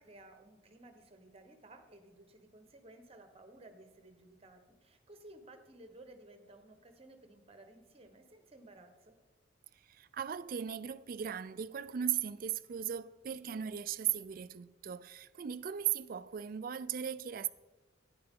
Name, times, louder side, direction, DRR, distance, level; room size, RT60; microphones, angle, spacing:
voice 1, 0.0-9.2, right 2 dB, 30° right, 1.1 m, -56 dB
voice 2, 9.9-17.5, right 9 dB, 45° right, 0.4 m, -37 dB
11.5 x 9.7 x 3.7 m
head